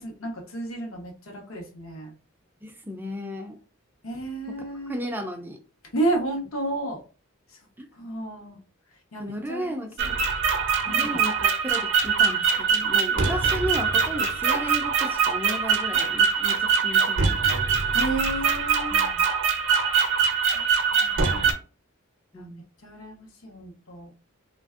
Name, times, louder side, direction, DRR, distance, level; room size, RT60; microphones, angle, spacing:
voice 1, 0.0-2.1 4.0-5.0 5.9-7.0 7.5-7.6 7.9-8.6 9.1-10.2 10.9-11.2 17.8-19.1 20.5-20.6 20.9-21.5 22.3-22.5 22.8-24.1, right 2 dB, 75° left, 1.0 m, -32 dB
voice 2, 2.6-3.6 4.9-5.6 7.8-7.9 9.2-9.9 10.8-17.3 18.9-19.2 22.3-22.6, equal, 10° right, 0.3 m, -34 dB
sound 1, 10.0-21.5, right 6 dB, 60° right, 0.6 m, -23 dB
3.2 x 2.5 x 2.4 m
head